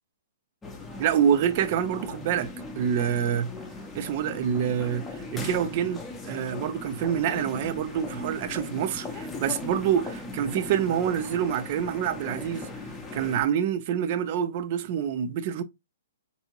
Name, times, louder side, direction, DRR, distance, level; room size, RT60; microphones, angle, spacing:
sound 1, 0.6-13.4, left 3 dB, 10° left, 0.7 m, -39 dB
voice 1, 1.0-3.5 3.9-12.7 13.1-15.6, right 9 dB, 45° right, 0.5 m, -27 dB
3.4 x 2.7 x 2.9 m
hypercardioid pair, 130°, 0 cm